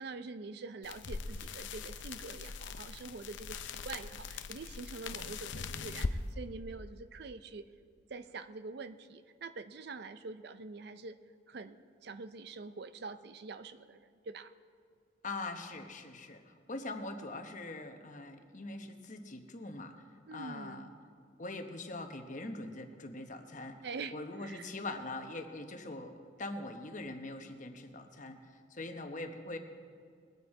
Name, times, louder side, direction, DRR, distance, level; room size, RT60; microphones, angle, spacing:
voice 1, 0.0-7.7 8.1-11.2 11.5-14.5 20.3-20.9 23.8-24.7, right 4 dB, 55° right, 11 dB, 0.5 m, -45 dB
sound 1, 0.8-6.2, left 4 dB, 70° left, 0.6 m, -41 dB
voice 2, 15.2-20.0 20.3-20.9 21.4-23.8 24.1-28.4 28.7-29.6, left 2 dB, 40° left, 5 dB, 1.0 m, -42 dB
21.5 x 8.8 x 4.8 m, 2.1 s
head